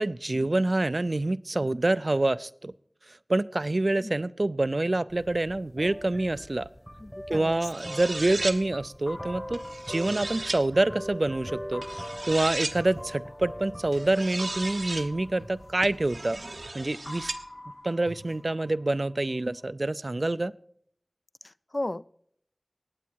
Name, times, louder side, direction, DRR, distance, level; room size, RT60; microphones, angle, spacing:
voice 1, 0.0-2.7 3.3-6.7 7.3-11.8 12.3-16.4 16.7-17.3 17.8-20.5, right 2 dB, 65° right, 17 dB, 0.4 m, -26 dB
sound 1, 5.1-16.7, equal, 10° left, 1.0 m, -42 dB
voice 2, 7.0-7.6 21.7-22.1, left 1 dB, 50° left, 17 dB, 0.4 m, -34 dB
sound 2, 7.6-8.6 9.5-10.6 11.8-12.8 13.9-15.1 15.8-17.4, right 2 dB, 85° right, 1.0 m, -35 dB
sound 3, 9.1-11.1 11.7-13.8 14.4-16.7 17.0-19.1, left 1 dB, 80° left, 1.2 m, -45 dB
18.5 x 8.3 x 4.6 m, 0.66 s
wide cardioid pair, 40°, 0 cm